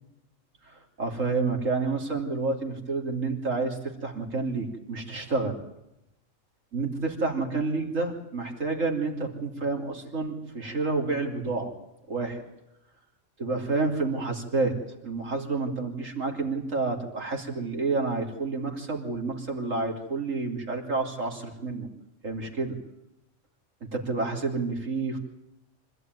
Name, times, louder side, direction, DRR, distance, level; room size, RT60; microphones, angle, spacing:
voice 1, 0.6-5.6 6.7-11.7 12.1-12.4 13.4-14.8 15.0-21.9 22.2-22.8 23.9-25.2, right 3 dB, 85° right, 2 dB, 3.6 m, -29 dB
26.0 x 15.0 x 9.5 m, 0.89 s
omnidirectional pair, 1.3 m